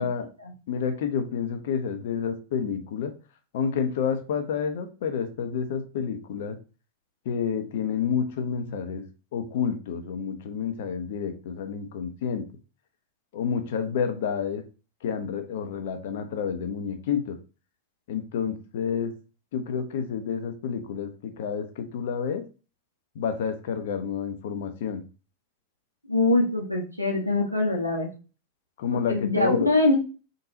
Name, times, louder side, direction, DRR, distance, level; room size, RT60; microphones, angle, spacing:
voice 1, 0.7-3.1 3.5-6.6 7.2-9.0 9.3-12.5 13.3-14.6 15.0-17.4 18.1-19.1 19.5-22.4 23.1-25.0 28.8-29.7, left 7 dB, 55° left, 8 dB, 0.7 m, -29 dB
voice 2, 26.1-28.1 28.9-29.9, left 2 dB, 90° right, 3 dB, 1.1 m, -23 dB
3.9 x 3.8 x 2.7 m, 0.34 s
figure-of-eight pair, 90°, 0 cm